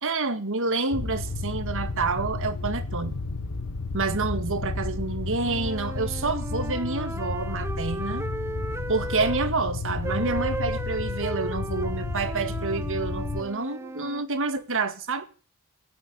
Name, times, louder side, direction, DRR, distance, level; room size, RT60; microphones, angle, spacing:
voice 1, 0.0-3.2 3.9-8.2 8.9-15.3, right 3 dB, 60° right, 2.0 m, -28 dB
sound 1, 0.9-13.4, left 3 dB, 70° left, 1.6 m, -32 dB
sound 2, 5.4-9.5 10.0-14.3, right 2 dB, 10° right, 0.8 m, -36 dB
16.0 x 10.0 x 8.7 m
head